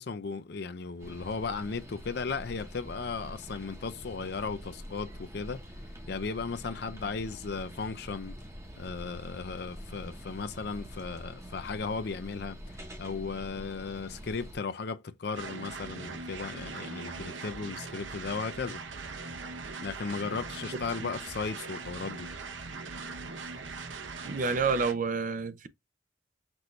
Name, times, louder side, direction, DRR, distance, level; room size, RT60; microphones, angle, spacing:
voice 1, 0.0-5.6 6.1-8.4 8.8-18.8 19.8-22.3, left 4 dB, 55° left, 0.5 m, -36 dB
sound 1, 1.0-14.6, equal, 15° right, 1.0 m, -45 dB
sound 2, 15.3-24.9, right 4 dB, 75° right, 0.8 m, -40 dB
voice 2, 24.2-25.7, right 4 dB, 45° right, 0.5 m, -29 dB
6.0 x 2.6 x 3.1 m
head